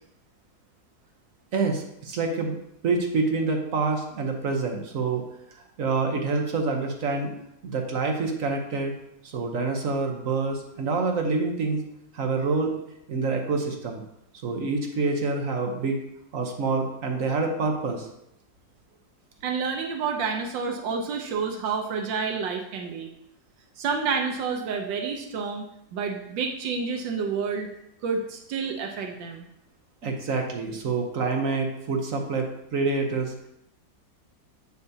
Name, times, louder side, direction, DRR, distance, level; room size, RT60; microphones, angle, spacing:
voice 1, 1.5-2.6 2.8-5.2 5.8-7.3 7.6-8.9 9.2-11.8 12.1-12.8 13.1-14.0 14.4-16.0 16.3-18.1 30.0-32.5 32.7-33.3, right 4 dB, 55° right, 3 dB, 1.1 m, -27 dB
voice 2, 19.4-23.1 23.8-27.7 28.0-29.5, right 5 dB, 85° right, 3 dB, 1.4 m, -29 dB
8.1 x 6.7 x 2.7 m, 0.80 s
omnidirectional pair, 2.0 m